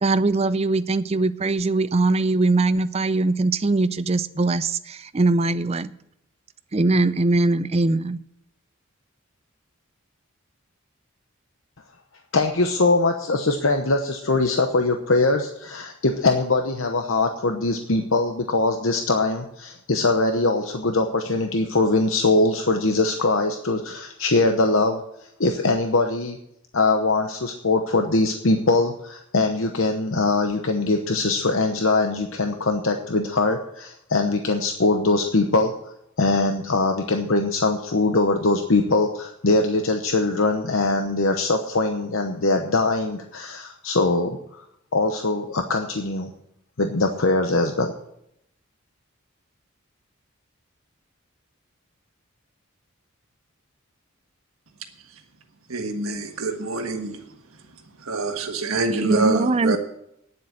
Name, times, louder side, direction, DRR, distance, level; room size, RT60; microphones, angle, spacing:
voice 1, 0.0-5.9 6.7-8.2 59.0-59.8, right 2 dB, 30° right, 14 dB, 0.4 m, -21 dB
voice 2, 12.3-25.0 25.4-26.4 26.7-35.7 36.2-44.4 44.9-46.3 46.8-47.9, left 3 dB, 70° left, 5 dB, 0.9 m, -22 dB
voice 3, 55.7-57.2 58.0-59.8, right 3 dB, 80° right, 4 dB, 1.6 m, -26 dB
9.9 x 7.7 x 8.8 m, 0.77 s
head